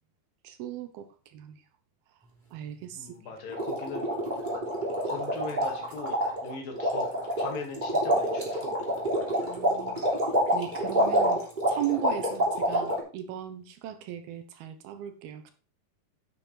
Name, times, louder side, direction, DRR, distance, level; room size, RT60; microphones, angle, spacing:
voice 1, 0.4-1.6 2.5-3.1 9.4-10.0 10.5-11.4 11.7-15.5, right 12 dB, 75° right, 8 dB, 2.6 m, -37 dB
voice 2, 3.0-4.0 5.0-7.1 7.4-9.0, left 3 dB, 60° left, 2 dB, 3.6 m, -39 dB
sound 1, 3.5-13.0, equal, 10° right, 3.3 m, -27 dB
10.5 x 6.9 x 4.4 m, 0.36 s
omnidirectional pair, 4.7 m